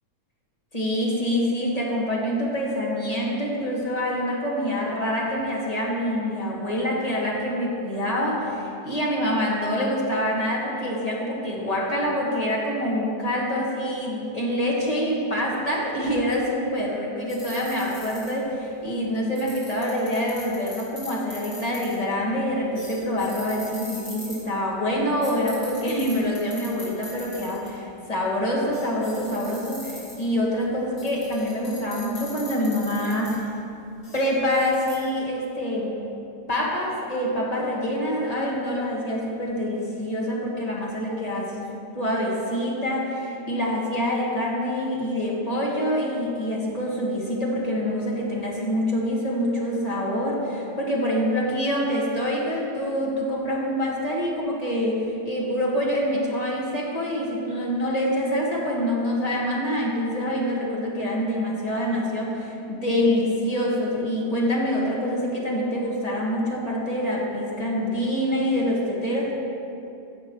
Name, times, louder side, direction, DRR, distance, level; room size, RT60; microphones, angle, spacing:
voice 1, 0.7-33.5 34.1-36.0 36.5-41.6 41.9-69.3, equal, 25° left, -4 dB, 1.6 m, -26 dB
sound 1, 17.3-18.5 19.4-22.1 22.8-24.4 25.2-27.7 28.2-28.3 28.7-30.4 31.0-33.5 34.0-35.0, left 2 dB, 75° left, 3.1 m, -41 dB
16.0 x 5.4 x 4.5 m, 2.7 s
omnidirectional pair, 1.9 m